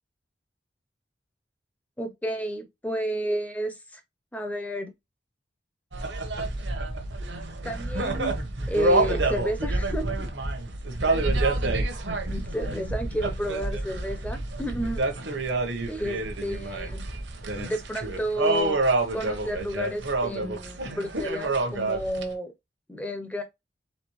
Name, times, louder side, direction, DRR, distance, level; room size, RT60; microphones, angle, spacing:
voice 1, 2.0-4.0 4.3-4.9 7.6-8.3 8.7-10.3 12.3-15.0 15.9-17.0 17.5-18.8 19.1-22.5 22.9-23.4, equal, 10° left, 0.6 m, -31 dB
sound 1, 5.9-22.2, right 2 dB, 75° right, 1.0 m, -28 dB
4.3 x 3.7 x 3.0 m
head